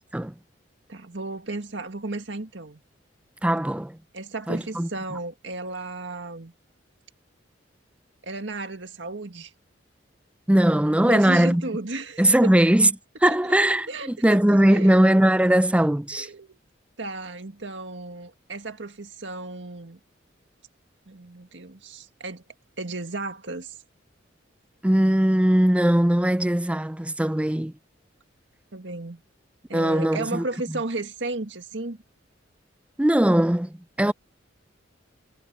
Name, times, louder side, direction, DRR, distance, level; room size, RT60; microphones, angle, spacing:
voice 1, 0.9-2.8 4.1-6.5 8.2-9.5 11.1-12.5 13.3-13.4 13.9-15.0 16.1-16.6 17.0-20.0 21.1-22.4 22.8-23.8 28.7-29.2 29.7-32.0, right 2 dB, 70° right, 2.1 m, -34 dB
voice 2, 3.4-4.0 4.5-4.9 10.5-11.7 12.2-12.9 13.2-16.3 24.8-27.7 29.7-30.8 33.0-34.1, right 1 dB, 5° right, 0.4 m, -20 dB
head